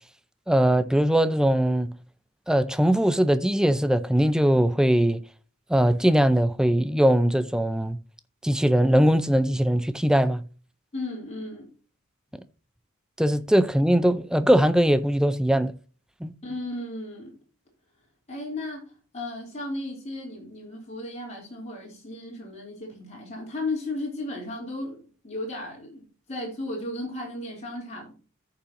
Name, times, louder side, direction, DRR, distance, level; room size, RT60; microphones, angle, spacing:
voice 1, 0.5-1.9 2.5-5.2 5.7-8.0 8.4-10.4 13.2-15.7 16.2-16.3, equal, 5° right, 0.4 m, -21 dB
voice 2, 10.9-11.7 16.4-17.3 18.3-28.2, left 2 dB, 30° left, 3.4 m, -35 dB
14.0 x 5.7 x 2.9 m
head